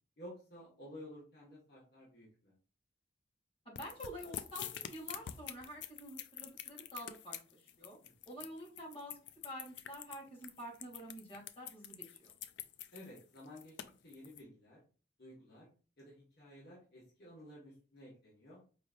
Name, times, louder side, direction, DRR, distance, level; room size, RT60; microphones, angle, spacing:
voice 1, 0.2-2.5 8.0-8.1 12.9-13.8 14.0-14.8 15.2-15.7 16.0-18.6, left 1 dB, 60° left, -6 dB, 1.5 m, -53 dB
voice 2, 3.6-8.0 8.3-9.2 9.4-12.3, equal, 30° left, -6 dB, 2.2 m, -48 dB
sound 1, 3.8-14.4, left 10 dB, 80° left, 0.4 m, -46 dB
4.8 x 3.2 x 2.5 m, 0.37 s
head